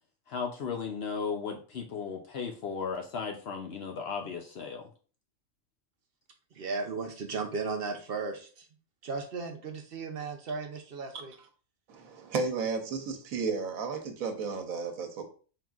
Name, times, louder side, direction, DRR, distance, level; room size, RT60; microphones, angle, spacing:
voice 1, 0.3-4.9, left 5 dB, 60° left, 3 dB, 0.7 m, -35 dB
voice 2, 6.5-8.7 9.0-11.3, right 4 dB, 55° right, 4 dB, 0.7 m, -35 dB
voice 3, 11.9-15.2, right 4 dB, 85° right, 5 dB, 1.2 m, -33 dB
4.3 x 3.8 x 2.3 m, 0.39 s
omnidirectional pair, 1.4 m